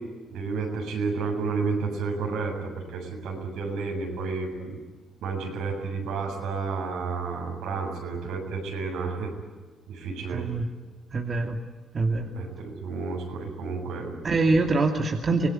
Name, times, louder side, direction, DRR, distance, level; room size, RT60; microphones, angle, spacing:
voice 1, 0.3-4.8 5.2-9.3 9.9-10.4 12.3-14.2, right 4 dB, 85° right, 2 dB, 7.4 m, -31 dB
voice 2, 10.3-10.7 11.1-11.6 11.9-12.3 14.2-15.5, right 3 dB, 40° right, 3 dB, 2.6 m, -24 dB
25.5 x 19.0 x 9.6 m, 1.3 s
cardioid pair, 90°, 0 cm